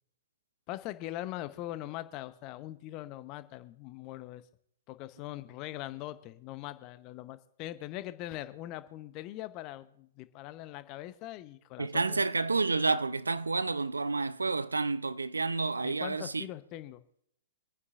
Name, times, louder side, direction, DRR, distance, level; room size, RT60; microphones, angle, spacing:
voice 1, 0.7-4.4 4.9-12.2 15.8-17.0, left 15 dB, 35° left, 0.8 m, -41 dB
voice 2, 11.8-16.4, right 3 dB, 80° right, 0.4 m, -30 dB
25.5 x 9.7 x 2.5 m
figure-of-eight pair, 110°, 0 cm